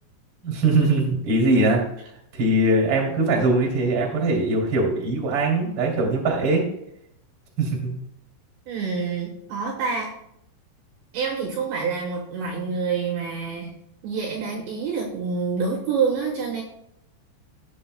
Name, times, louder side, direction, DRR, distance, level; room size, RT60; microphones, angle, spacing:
voice 1, 0.4-1.8 2.3-6.6 7.6-7.9, right 2 dB, 35° right, 0 dB, 2.7 m, -21 dB
voice 2, 8.7-10.1 11.1-13.7 14.0-16.6, right 5 dB, 70° right, -1 dB, 3.0 m, -27 dB
16.5 x 7.8 x 2.3 m, 0.75 s
omnidirectional pair, 5.9 m